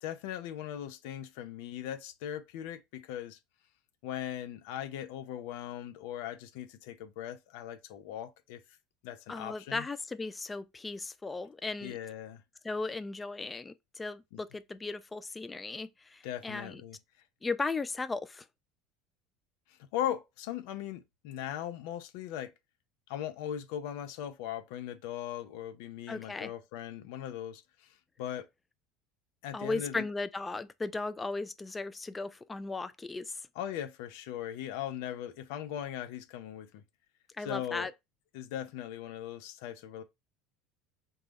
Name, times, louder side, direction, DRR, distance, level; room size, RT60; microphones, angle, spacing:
voice 1, 0.0-3.4 4.0-8.6 9.0-9.9 11.8-12.4 16.2-17.0 19.9-22.5 23.1-28.5 29.4-30.0 33.6-36.7 37.4-37.9 38.3-40.0, left 11 dB, 70° left, 0.5 m, -39 dB
voice 2, 9.3-12.0 12.6-16.8 17.4-18.5 26.1-26.5 29.5-33.4 37.4-37.9, left 3 dB, 20° left, 0.3 m, -36 dB
3.9 x 2.2 x 3.3 m
hypercardioid pair, 70°, 0 cm